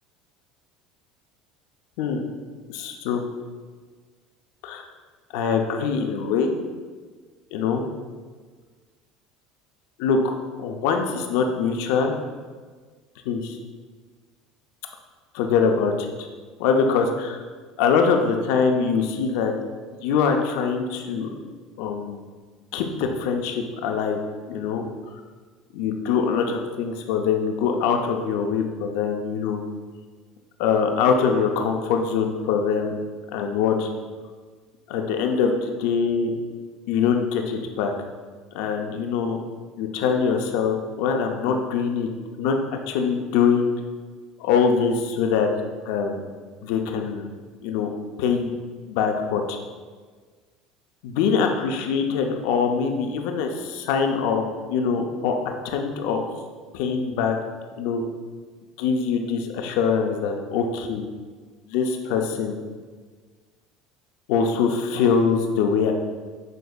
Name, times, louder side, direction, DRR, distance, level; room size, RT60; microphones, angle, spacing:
voice 1, 2.7-3.2 4.6-4.8 5.3-6.5 7.5-7.8 10.0-10.3 10.6-12.1 13.3-13.6 15.3-16.1 16.6-17.4 17.8-19.5 20.0-21.3 21.8-22.2 22.7-24.2 24.5-24.8 25.7-29.6 30.6-33.0 33.3-33.9 34.9-36.3 36.9-37.9 38.5-39.4 39.8-42.1 42.4-42.6 42.9-43.7 44.4-45.5 45.9-46.2 46.6-47.3 47.6-47.9 48.2-48.5 48.8-49.6 51.0-55.4 55.6-56.2 56.7-57.4 57.8-58.0 58.8-61.1 61.7-62.6 64.3-65.9, left 6 dB, 75° left, 4 dB, 0.5 m, -23 dB
6.5 x 3.4 x 2.3 m, 1.5 s
supercardioid pair, 100°, 0 cm